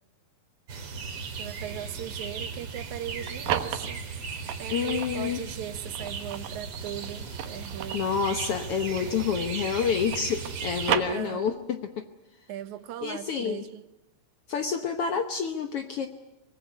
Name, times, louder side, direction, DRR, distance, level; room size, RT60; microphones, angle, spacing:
sound 1, 0.7-10.9, right 5 dB, 45° right, 2.8 m, -37 dB
voice 1, 1.4-4.0 4.6-8.1 11.0-11.5 12.5-13.8, right 11 dB, 65° right, 11 dB, 2.1 m, -38 dB
sound 2, 3.0-5.2 5.7-9.5 9.8-11.8, right 11 dB, 90° right, 3.0 m, -34 dB
voice 2, 4.7-5.4 7.9-12.0 13.0-13.6 14.5-16.1, left 6 dB, 75° left, 7 dB, 1.3 m, -28 dB
24.5 x 19.5 x 9.7 m, 0.92 s
omnidirectional pair, 4.1 m